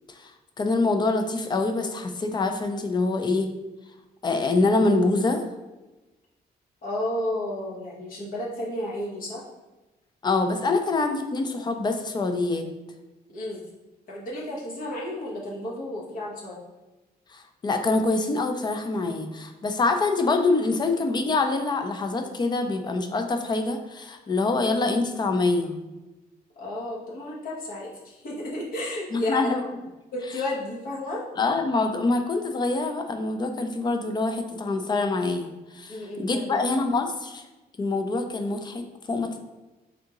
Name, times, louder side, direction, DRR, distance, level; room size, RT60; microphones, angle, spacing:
voice 1, 0.6-3.5 4.2-5.4 10.2-12.7 17.3-25.8 29.1-29.6 31.4-37.4 37.8-39.4, left 3 dB, 25° left, 6 dB, 0.4 m, -25 dB
voice 2, 6.8-9.4 13.3-13.6 14.1-16.6 26.6-29.4 30.1-31.2 35.9-36.6, left 1 dB, 60° left, -3 dB, 1.1 m, -32 dB
3.6 x 3.6 x 2.9 m, 1.1 s
cardioid pair, 140°, 16 cm